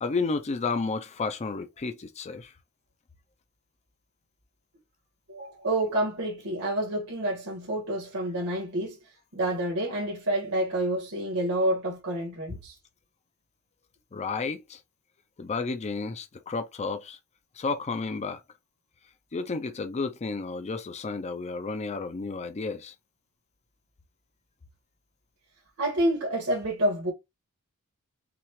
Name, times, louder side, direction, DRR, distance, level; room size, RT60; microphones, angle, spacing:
voice 1, 0.0-2.5 14.1-14.8 15.4-17.2 17.5-18.4 19.3-22.9, left 4 dB, 30° left, 0.4 m, -32 dB
voice 2, 5.3-12.7 25.8-27.1, right 1 dB, 80° right, 1.8 m, -28 dB
5.8 x 2.4 x 3.1 m
head